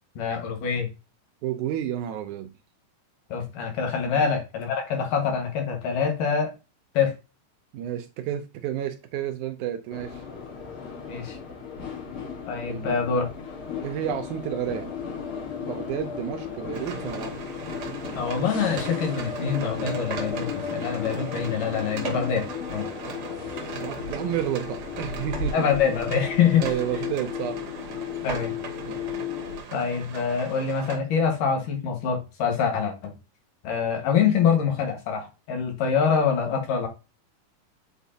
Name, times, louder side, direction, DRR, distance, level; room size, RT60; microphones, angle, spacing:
voice 1, 0.2-0.9 3.3-6.5 6.9-7.1 11.1-11.4 12.5-13.3 18.1-22.9 25.5-26.7 28.2-28.6 29.7-33.1 33.6-36.9, left 6 dB, 80° left, 3.1 m, -25 dB
voice 2, 1.4-2.5 4.1-4.2 7.7-10.2 12.7-13.0 13.8-14.9 15.6-17.3 23.8-25.7 26.6-27.6 28.9-29.1, right 10 dB, 75° right, 2.0 m, -31 dB
sound 1, 9.9-29.6, left 6 dB, 50° left, 1.9 m, -35 dB
sound 2, 16.7-31.0, right 6 dB, 60° right, 1.5 m, -39 dB
8.2 x 4.5 x 2.8 m
omnidirectional pair, 3.8 m